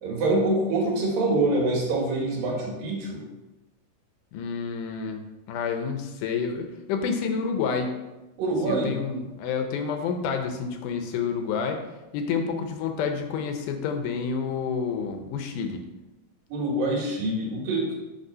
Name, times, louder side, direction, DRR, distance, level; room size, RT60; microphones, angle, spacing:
voice 1, 0.0-3.2 8.4-8.9 16.5-17.9, right 2 dB, 85° right, -2 dB, 3.4 m, -25 dB
voice 2, 4.3-5.2 5.5-8.0 8.7-11.8 12.1-15.8, left 6 dB, 75° left, 5 dB, 2.1 m, -29 dB
8.0 x 3.3 x 5.5 m, 1.0 s
omnidirectional pair, 4.0 m